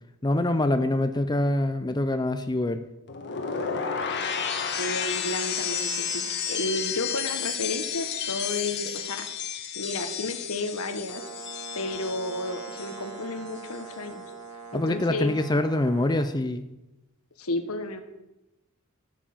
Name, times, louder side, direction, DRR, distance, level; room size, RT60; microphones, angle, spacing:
voice 1, 0.2-2.8 14.7-16.6, left 1 dB, 20° left, 8 dB, 0.6 m, -25 dB
sound 1, 3.1-13.2 13.5-13.9, left 7 dB, 55° left, 1.6 m, -32 dB
voice 2, 4.8-9.3 9.7-11.2 11.7-14.2 14.7-15.3 17.4-18.0, left 2 dB, 75° left, 7 dB, 1.5 m, -32 dB
Brass instrument, 11.0-16.3, right 5 dB, 75° right, 1.5 m, -42 dB
13.5 x 7.5 x 7.3 m, 0.97 s
head